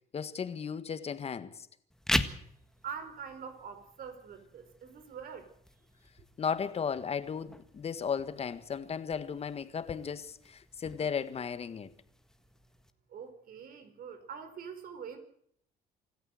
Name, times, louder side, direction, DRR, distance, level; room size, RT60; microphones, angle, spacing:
voice 1, 0.1-1.7 6.4-11.9, left 6 dB, 35° left, 1.7 m, -35 dB
sound 1, 1.9-12.9, left 1 dB, 5° left, 1.7 m, -41 dB
voice 2, 2.8-5.5 13.1-15.2, right 7 dB, 60° right, 5.0 m, -44 dB
26.0 x 13.5 x 8.0 m
cardioid pair, 110°, 17 cm